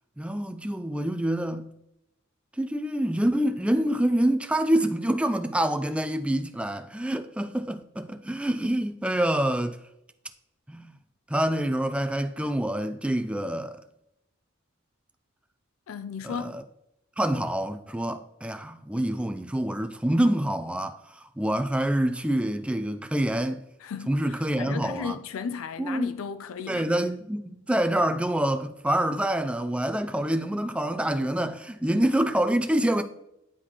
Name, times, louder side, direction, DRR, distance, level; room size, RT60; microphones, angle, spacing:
voice 1, 0.2-1.7 2.6-9.8 10.7-10.9 11.3-13.8 16.2-16.6 17.2-23.6 24.1-25.2 25.8-26.1 26.7-33.0, right 1 dB, 5° right, 0.3 m, -26 dB
voice 2, 15.9-16.6 23.8-24.1 24.6-26.9, left 6 dB, 90° left, 0.4 m, -34 dB
9.8 x 3.9 x 3.0 m
head